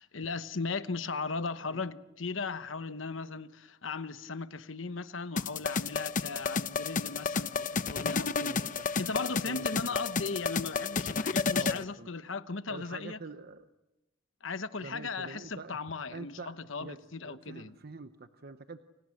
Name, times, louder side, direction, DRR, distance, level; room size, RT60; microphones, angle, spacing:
voice 1, 0.0-13.2 14.4-17.8, left 4 dB, 70° left, 1.1 m, -37 dB
sound 1, 5.4-11.8, left 4 dB, 40° left, 0.8 m, -31 dB
voice 2, 8.5-9.9 11.5-12.1 12.7-13.7 14.8-15.8 16.1-18.8, right 3 dB, 55° right, 0.9 m, -46 dB
29.5 x 28.0 x 6.5 m
head